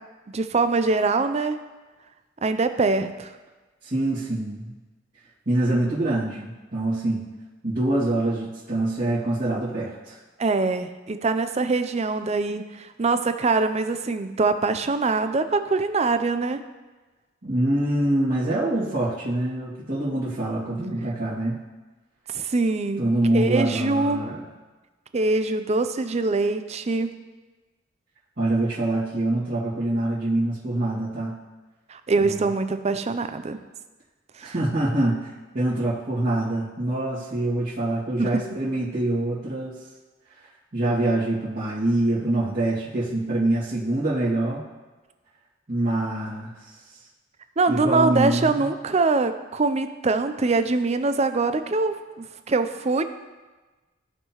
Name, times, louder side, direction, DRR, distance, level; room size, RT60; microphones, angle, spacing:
voice 1, 0.3-1.6 2.4-3.3 10.4-16.6 22.3-23.1 23.3-24.2 25.1-27.1 31.9-33.6 34.4-34.5 38.2-38.4 47.6-53.0, right 3 dB, 35° right, 9 dB, 0.5 m, -23 dB
voice 2, 3.8-4.7 5.5-7.2 7.6-10.2 17.4-21.6 23.0-24.5 28.4-31.3 32.1-32.4 34.4-35.2 35.5-39.7 40.7-44.6 45.7-46.5 47.7-48.7, right 1 dB, 50° right, -14 dB, 2.2 m, -25 dB
15.5 x 5.6 x 3.0 m, 1.2 s
head